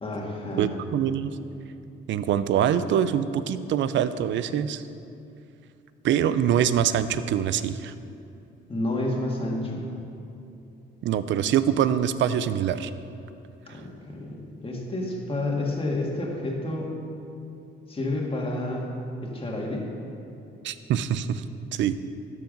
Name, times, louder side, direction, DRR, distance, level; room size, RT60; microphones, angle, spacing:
voice 1, 0.0-0.7 8.7-9.9 13.7-16.9 17.9-18.9 19.2-19.9, left 2 dB, 25° left, -1 dB, 1.8 m, -30 dB
voice 2, 0.6-1.3 2.1-4.8 6.0-7.9 11.0-12.9 20.6-21.4 21.7-22.0, right 9 dB, 70° right, 13 dB, 0.5 m, -24 dB
13.0 x 4.8 x 5.2 m, 2.7 s
cardioid pair, 90°, 20 cm